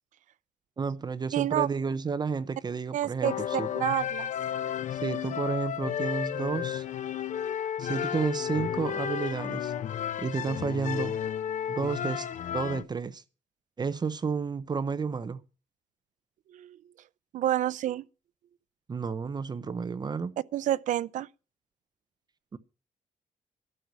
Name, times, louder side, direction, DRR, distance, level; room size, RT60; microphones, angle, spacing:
voice 1, 0.8-3.7 4.9-6.9 7.8-9.7 10.2-11.2 11.7-13.2 13.8-15.4 18.9-20.3 22.5-22.6, right 5 dB, 35° right, 0.8 m, -31 dB
voice 2, 1.3-1.7 2.9-4.3 16.5-16.8 17.3-18.0 20.5-21.3, right 12 dB, 85° right, 0.5 m, -29 dB
sound 1, 3.2-12.8, left 9 dB, 75° left, 0.8 m, -32 dB
12.5 x 6.3 x 8.3 m
cardioid pair, 125°, 13 cm